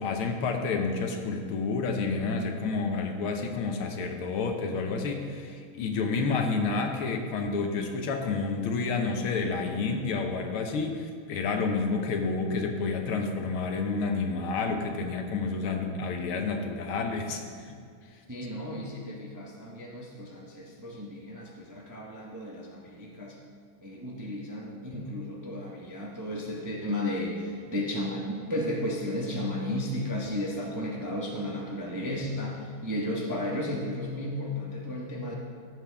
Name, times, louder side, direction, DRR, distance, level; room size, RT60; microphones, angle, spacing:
voice 1, 0.0-17.8, left 4 dB, 80° left, 4 dB, 1.8 m, -29 dB
voice 2, 18.3-23.4 23.8-35.3, left 1 dB, 15° right, -3 dB, 0.6 m, -34 dB
14.5 x 7.8 x 3.5 m, 2.3 s
omnidirectional pair, 2.3 m